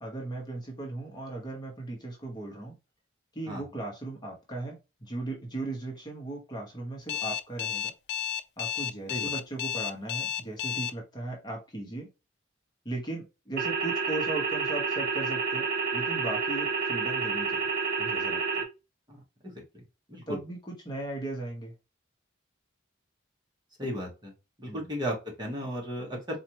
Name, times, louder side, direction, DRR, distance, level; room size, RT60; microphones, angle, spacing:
voice 1, 0.0-2.8 3.3-7.9 8.6-12.1 12.8-15.7 15.9-17.6 18.0-18.6 20.3-21.7 24.6-24.9, right 2 dB, 20° left, 1.0 m, -37 dB
Alarm, 7.1-10.9, left 10 dB, 55° left, 0.3 m, -32 dB
sound 1, 13.6-18.6, right 5 dB, 50° right, 0.8 m, -29 dB
voice 2, 20.1-20.4 23.8-24.3 24.6-26.4, equal, 20° right, 1.1 m, -34 dB
4.2 x 2.5 x 2.9 m
head